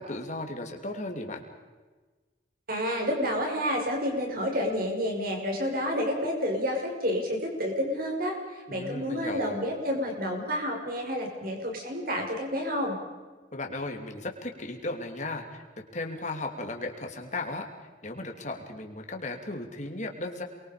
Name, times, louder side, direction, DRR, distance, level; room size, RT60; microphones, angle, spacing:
voice 1, 0.0-1.4 8.7-9.6 13.5-17.7 18.0-20.4, left 2 dB, 40° left, 3 dB, 3.1 m, -36 dB
voice 2, 2.7-13.0, equal, 50° right, 1 dB, 5.8 m, -29 dB
29.0 x 23.0 x 5.2 m, 1.3 s
head